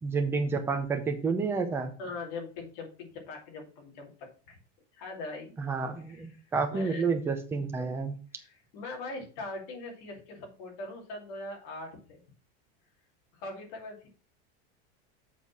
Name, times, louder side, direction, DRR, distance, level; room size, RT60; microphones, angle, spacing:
voice 1, 0.0-1.9 5.6-8.1, right 4 dB, 10° right, 6 dB, 0.6 m, -30 dB
voice 2, 2.0-4.6 4.9-5.5 6.1-6.2 6.7-7.1 8.4-12.2 13.3-14.1, left 2 dB, 50° left, 0 dB, 2.8 m, -41 dB
7.3 x 4.1 x 6.1 m, 0.37 s
supercardioid pair, 180°, 31 cm